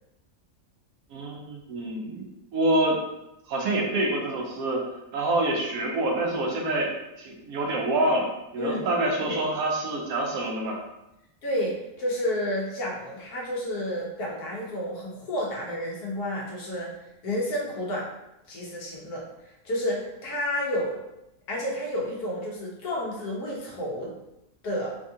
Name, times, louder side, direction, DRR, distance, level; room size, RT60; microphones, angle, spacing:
voice 1, 1.1-2.2 2.5-3.0 3.5-4.8 5.1-6.9 7.2-10.8, right 2 dB, 70° right, 0 dB, 1.1 m, -26 dB
voice 2, 11.4-18.1 18.5-21.0 21.5-24.1 24.6-25.0, left 1 dB, 85° left, -3 dB, 1.4 m, -31 dB
3.4 x 2.3 x 2.7 m, 0.90 s
omnidirectional pair, 1.6 m